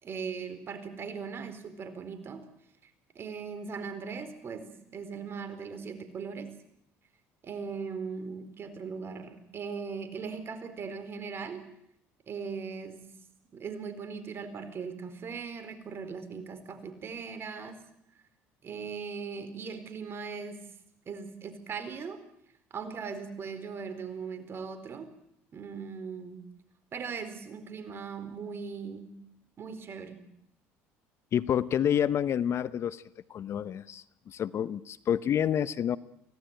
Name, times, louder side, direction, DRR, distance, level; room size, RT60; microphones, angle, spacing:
voice 1, 0.0-2.5 3.1-6.5 7.4-11.6 12.3-13.0 13.5-17.8 18.6-20.6 21.1-22.2 22.7-25.1 25.5-26.5 26.9-29.1 29.6-30.2, right 5 dB, 45° right, 10 dB, 4.3 m, -39 dB
voice 2, 31.3-33.0 33.3-36.0, left 9 dB, 50° left, 17 dB, 0.8 m, -28 dB
25.0 x 17.5 x 9.1 m, 0.74 s
supercardioid pair, 85°, 6 cm